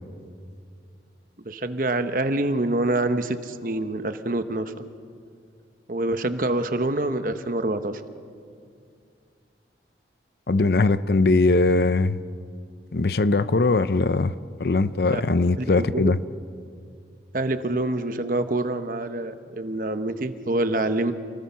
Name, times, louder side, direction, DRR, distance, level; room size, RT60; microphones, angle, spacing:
voice 1, 1.4-4.7 5.9-7.9 15.1-15.2 15.6-16.2 17.3-21.1, right 2 dB, 50° right, 1.0 m, -26 dB
voice 2, 10.5-12.2 12.9-14.3 14.6-16.2, left 3 dB, 60° left, 0.6 m, -20 dB
29.0 x 20.0 x 5.7 m
head